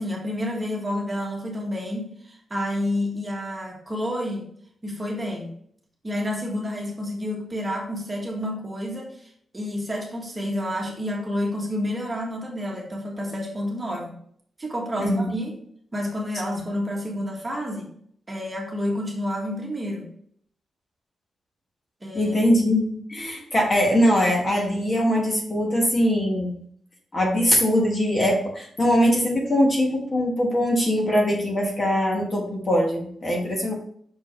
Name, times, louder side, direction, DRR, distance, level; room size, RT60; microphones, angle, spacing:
voice 1, 0.0-4.4 4.8-5.5 6.0-9.3 9.5-14.2 14.6-15.5 15.9-17.9 18.3-20.1 22.0-22.4, left 1 dB, 15° right, -1 dB, 1.5 m, -29 dB
voice 2, 15.0-15.4 16.5-16.7 22.1-26.6 27.1-33.7, equal, 25° left, 0 dB, 1.3 m, -22 dB
6.0 x 5.1 x 3.2 m, 0.63 s
wide cardioid pair, 170°, 0 cm